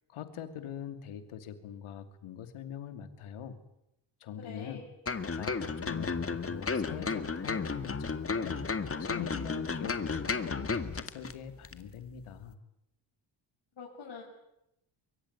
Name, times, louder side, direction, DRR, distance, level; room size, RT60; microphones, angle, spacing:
voice 1, 0.0-3.6 4.2-4.8 5.3-8.6 9.0-12.6, left 8 dB, 90° left, 9 dB, 2.8 m, -43 dB
voice 2, 4.4-4.9 13.8-14.2, left 5 dB, 55° left, -2 dB, 6.1 m, -44 dB
sound 1, 5.1-11.3 11.6-11.8, left 4 dB, 30° left, 2.0 m, -33 dB
23.5 x 23.0 x 9.6 m, 0.83 s
cardioid pair, 90°, 48 cm